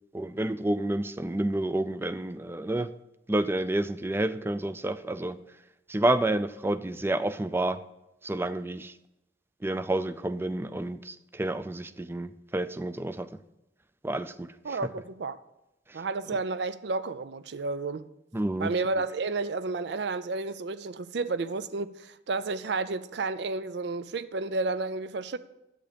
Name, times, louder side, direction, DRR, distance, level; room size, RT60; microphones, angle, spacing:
voice 1, 0.1-2.9 3.3-5.4 5.9-7.8 8.2-9.0 9.6-13.3 14.0-14.9 15.9-16.0 18.3-18.7, right 1 dB, 15° right, 0.4 m, -29 dB
voice 2, 14.6-15.4 15.9-18.1 18.6-25.4, right 3 dB, 65° right, 0.5 m, -31 dB
11.0 x 8.5 x 5.2 m
head